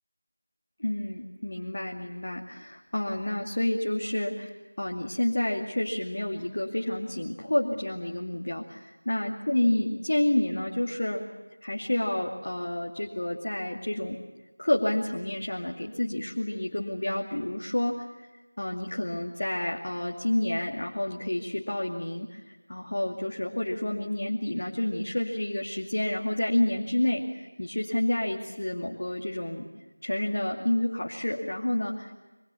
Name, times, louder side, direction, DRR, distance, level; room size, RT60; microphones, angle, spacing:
voice 1, 0.8-11.2 11.6-14.2 14.6-18.3 18.6-29.7 30.0-32.1, left 1 dB, 55° left, 0 dB, 2.4 m, -29 dB
28.5 x 24.5 x 7.0 m, 1.2 s
figure-of-eight pair, 175°, 0 cm